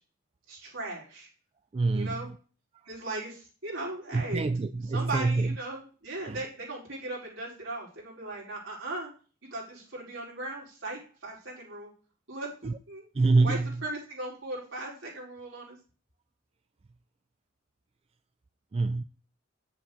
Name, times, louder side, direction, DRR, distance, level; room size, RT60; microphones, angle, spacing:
voice 1, 0.5-1.3 1.9-2.3 2.8-4.4 4.9-9.1 9.5-11.9 12.3-13.1 13.4-15.8, right 2 dB, 70° right, -4 dB, 4.5 m, -38 dB
voice 2, 1.7-2.3 4.1-5.6 6.2-6.4 12.6-12.8 13.2-13.8 18.7-19.0, right 3 dB, 30° right, 11 dB, 0.3 m, -26 dB
8.7 x 7.4 x 3.8 m, 0.37 s
head